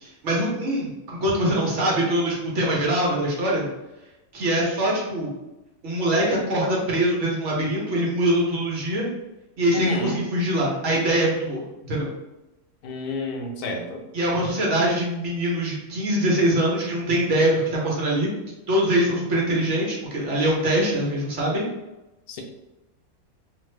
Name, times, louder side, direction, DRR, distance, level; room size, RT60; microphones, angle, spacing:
voice 1, 0.0-3.7 4.3-5.3 5.8-9.1 9.6-11.6 11.9-12.1 14.1-18.3 18.7-21.6, right 1 dB, 55° right, -4 dB, 1.0 m, -23 dB
voice 2, 9.7-10.2 12.8-14.0 22.3-22.4, left 2 dB, 90° left, 2 dB, 0.5 m, -29 dB
2.5 x 2.5 x 3.1 m, 0.98 s
omnidirectional pair, 1.6 m